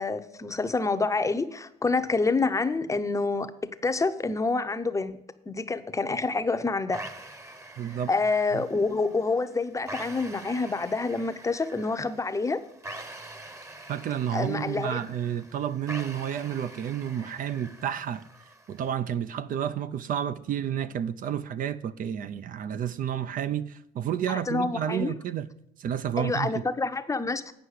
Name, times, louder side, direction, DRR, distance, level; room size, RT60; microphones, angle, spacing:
voice 1, 0.0-3.5 3.8-5.2 5.5-7.0 8.1-12.6 14.3-15.0 24.3-25.1 26.2-27.5, left 3 dB, 20° left, 0.7 m, -27 dB
sound 1, 6.9-18.9, right 1 dB, 15° right, 1.0 m, -45 dB
voice 2, 7.8-8.1 8.5-8.6 13.9-18.2 18.7-25.5 25.8-26.6, right 9 dB, 55° right, 0.5 m, -30 dB
9.3 x 5.8 x 6.5 m
cardioid pair, 110°, 17 cm